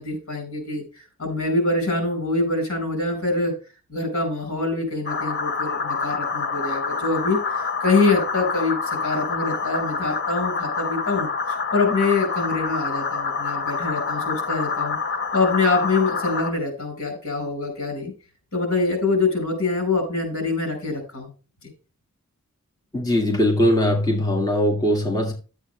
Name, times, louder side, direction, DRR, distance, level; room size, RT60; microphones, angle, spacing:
voice 1, 0.0-3.5 3.9-11.3 11.7-15.0 15.3-18.1 18.5-21.3, left 3 dB, 85° left, 5 dB, 4.8 m, -24 dB
sound 1, 5.1-16.5, left 5 dB, 50° left, 1.1 m, -27 dB
voice 2, 22.9-25.3, left 1 dB, 20° left, 0 dB, 2.0 m, -20 dB
11.0 x 8.1 x 3.2 m, 0.34 s
head